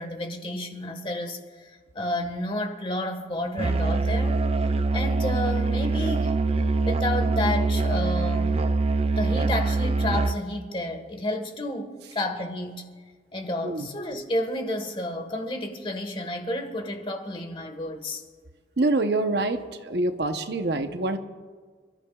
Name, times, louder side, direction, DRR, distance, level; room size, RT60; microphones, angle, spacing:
voice 1, 0.0-4.7 4.9-6.4 6.9-8.6 9.2-12.9 13.3-18.2, left 1 dB, 30° left, 1.5 m, -31 dB
Musical instrument, 3.6-10.5, right 3 dB, 35° right, 0.4 m, -24 dB
voice 2, 18.8-21.2, right 2 dB, 70° right, 0.9 m, -25 dB
29.0 x 14.0 x 2.4 m
head